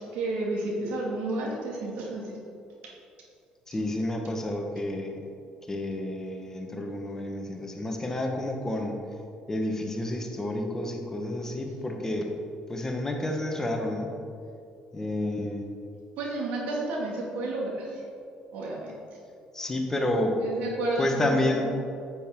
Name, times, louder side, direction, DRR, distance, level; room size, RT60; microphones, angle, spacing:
voice 1, 0.1-2.4 2.8-2.9 16.2-18.0 18.5-18.9 20.4-21.6, right 2 dB, 80° right, -2 dB, 2.1 m, -31 dB
voice 2, 3.7-5.2 5.7-9.0 9.5-12.3 12.7-14.1 14.9-15.7 19.5-20.4 21.0-21.7, left 1 dB, 20° left, 2 dB, 1.3 m, -30 dB
9.1 x 7.8 x 3.8 m, 2.4 s
cardioid pair, 90°, 3 cm